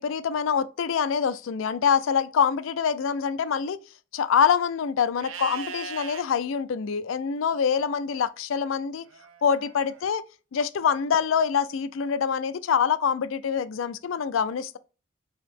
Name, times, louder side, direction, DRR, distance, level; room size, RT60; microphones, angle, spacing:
voice 1, 0.0-3.8 4.1-9.1 9.4-10.2 10.5-14.8, left 7 dB, 75° left, 0.4 m, -25 dB
Livestock farm animals working animals, 5.2-6.2 9.1-10.0, right 5 dB, 80° right, 0.6 m, -39 dB
4.6 x 2.8 x 3.4 m
head